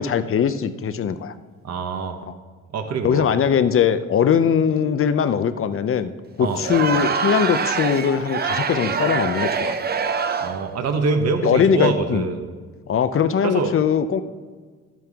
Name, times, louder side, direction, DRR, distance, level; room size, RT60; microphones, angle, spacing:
voice 1, 0.0-1.3 3.0-6.1 6.4-9.7 11.4-12.2 12.9-14.2, left 7 dB, 45° left, 11 dB, 0.6 m, -20 dB
voice 2, 1.6-2.2 2.7-3.3 6.4-6.6 10.4-12.4 13.4-13.7, right 4 dB, 60° right, 6 dB, 1.2 m, -24 dB
Crowd, 6.5-10.7, right 5 dB, 30° right, 0.6 m, -24 dB
12.0 x 9.1 x 3.6 m, 1.5 s
cardioid pair, 90°, 30 cm